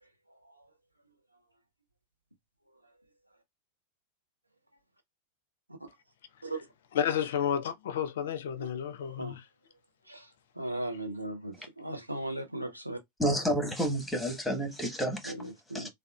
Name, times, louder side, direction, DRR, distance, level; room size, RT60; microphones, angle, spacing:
voice 1, 0.0-0.7 5.8-5.9 6.4-6.6 9.0-9.4 10.1-13.0 15.2-15.9, right 1 dB, 85° right, 0.5 m, -38 dB
voice 2, 7.0-9.4, left 8 dB, 60° left, 0.4 m, -31 dB
voice 3, 13.2-15.3 15.7-15.9, right 1 dB, 5° left, 1.0 m, -30 dB
3.4 x 2.2 x 2.2 m
figure-of-eight pair, 90°, 0 cm